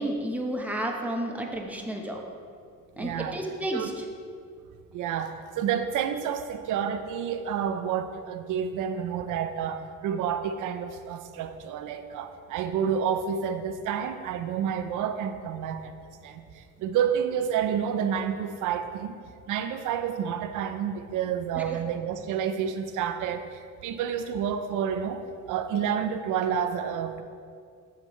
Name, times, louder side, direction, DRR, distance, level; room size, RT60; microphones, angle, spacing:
voice 1, 0.0-2.2 3.0-4.1 21.5-21.6, right 1 dB, 5° right, 1 dB, 1.0 m, -31 dB
voice 2, 3.0-3.4 3.7-3.9 4.9-15.9 16.2-16.4 16.8-19.2 19.5-23.5 23.8-27.2, right 8 dB, 85° right, 8 dB, 0.6 m, -29 dB
8.0 x 6.6 x 3.2 m, 2.2 s
cardioid pair, 90°, 30 cm